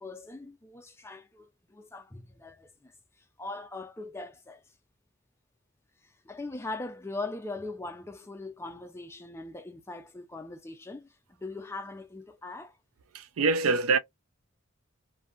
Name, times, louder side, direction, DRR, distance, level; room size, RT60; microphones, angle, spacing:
voice 1, 0.0-2.9 3.4-4.6 6.2-11.1 11.4-12.8, left 2 dB, 10° left, 0.3 m, -40 dB
voice 2, 13.1-14.0, right 4 dB, 85° right, 0.4 m, -24 dB
2.6 x 2.1 x 2.3 m
head